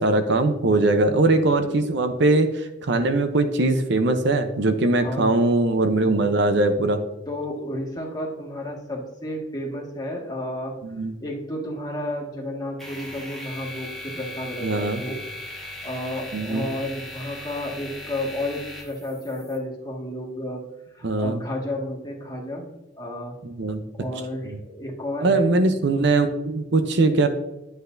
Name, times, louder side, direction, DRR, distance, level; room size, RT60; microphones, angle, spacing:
voice 1, 0.0-7.0 10.8-11.1 14.6-15.0 16.3-16.7 21.0-21.4 23.4-23.8 24.4-24.6 25.2-27.3, right 2 dB, 70° right, 8 dB, 0.7 m, -21 dB
voice 2, 5.0-5.4 6.0-6.3 7.3-10.7 11.2-15.2 15.8-20.6 20.9-22.7 23.0-23.3 24.0-25.7, left 1 dB, 20° left, -2 dB, 1.7 m, -32 dB
sound 1, 12.8-19.6, left 1 dB, ahead, 1.5 m, -38 dB
10.0 x 7.9 x 2.6 m, 0.92 s
head